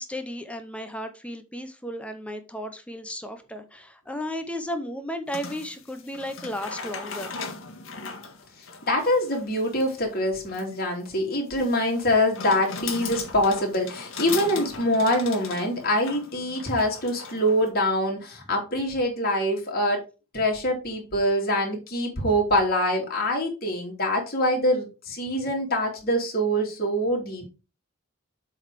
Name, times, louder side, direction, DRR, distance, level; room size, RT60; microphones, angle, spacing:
voice 1, 0.0-7.3, equal, 5° left, 7 dB, 0.7 m, -34 dB
sound 1, 5.3-17.7, left 4 dB, 65° left, 1.5 m, -38 dB
voice 2, 8.9-20.0 20.3-27.5, equal, 45° left, 0 dB, 2.7 m, -24 dB
7.6 x 4.0 x 4.9 m, 0.31 s
head